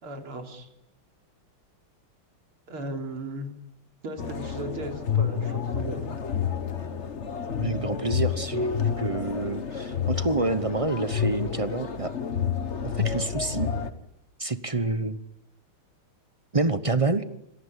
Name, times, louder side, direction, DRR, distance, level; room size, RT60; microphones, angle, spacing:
voice 1, 0.0-0.7 2.7-3.5 4.0-6.1, right 1 dB, 75° right, 4 dB, 4.3 m, -36 dB
sound 1, 4.2-13.9, left 7 dB, 35° left, 1.5 m, -29 dB
voice 2, 7.6-8.7 9.0-12.1 12.8-13.7 14.4-15.2 16.5-17.2, right 3 dB, 35° right, 12 dB, 0.5 m, -28 dB
27.0 x 18.5 x 9.9 m, 0.80 s
omnidirectional pair, 2.4 m